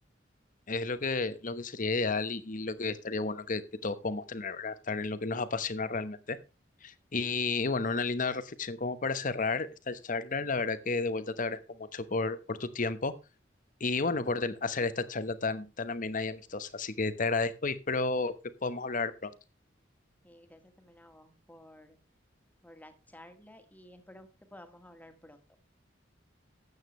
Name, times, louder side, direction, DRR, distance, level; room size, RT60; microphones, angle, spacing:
voice 1, 0.7-6.4 6.8-13.1 13.8-18.3 18.6-19.3, left 3 dB, 45° left, 13 dB, 1.0 m, -32 dB
voice 2, 20.2-22.0 22.6-25.4, left 1 dB, 10° left, 7 dB, 1.7 m, -54 dB
13.0 x 8.9 x 3.2 m, 0.29 s
head